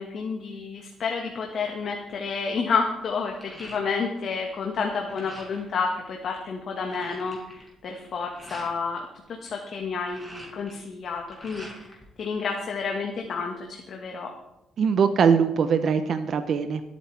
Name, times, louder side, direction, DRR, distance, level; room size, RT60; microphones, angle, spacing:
voice 1, 0.0-9.1 9.4-14.3, left 5 dB, 60° left, 1 dB, 1.7 m, -30 dB
sound 1, 1.8-2.1 2.5-4.3 4.6-5.8 6.2-6.3 6.5-8.8 9.8-12.0 12.4-13.3, right 1 dB, 10° right, 5.3 m, -46 dB
voice 2, 14.8-16.8, right 6 dB, 60° right, 8 dB, 0.8 m, -22 dB
22.5 x 9.3 x 3.4 m, 0.87 s
cardioid pair, 90°, 0 cm